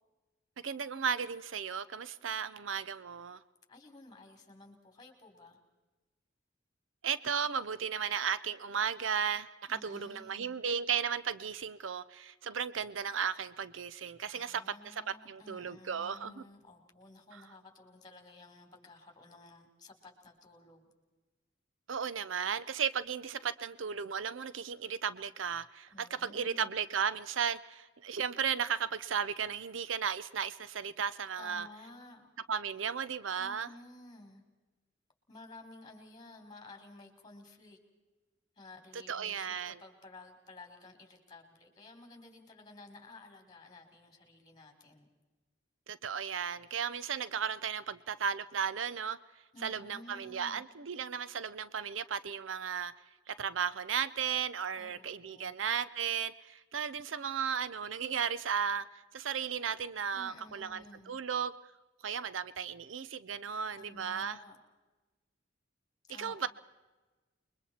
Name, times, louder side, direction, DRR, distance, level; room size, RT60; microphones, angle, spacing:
voice 1, 0.6-3.4 7.0-16.4 17.3-17.4 21.9-31.7 32.5-33.7 38.9-39.8 45.9-49.2 49.6-52.9 53.3-58.8 59.1-61.5 62.0-64.4 66.2-66.5, right 7 dB, 80° right, 15 dB, 0.6 m, -35 dB
voice 2, 3.7-5.6 9.7-10.6 14.3-20.9 25.9-26.7 31.4-32.3 33.3-34.4 35.3-37.8 38.6-45.1 49.5-50.6 54.7-55.5 60.1-61.2 63.7-64.6 66.1-66.4, left 2 dB, 20° left, 5 dB, 3.6 m, -54 dB
28.5 x 22.5 x 4.3 m, 1.2 s
head